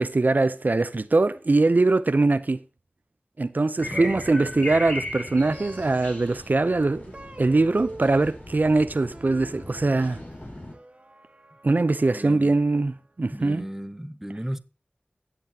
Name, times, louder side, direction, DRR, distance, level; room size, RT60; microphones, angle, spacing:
voice 1, 0.0-2.6 3.4-10.2 11.6-13.6, right 3 dB, 60° right, 0.5 m, -22 dB
sound 1, 3.8-10.7, left 1 dB, 50° left, 3.7 m, -38 dB
Plucked string instrument, 3.8-13.2, right 2 dB, 40° right, 1.1 m, -46 dB
voice 2, 12.1-12.6 13.3-14.6, equal, 10° right, 0.7 m, -35 dB
16.0 x 7.8 x 2.8 m
wide cardioid pair, 55°, 3 cm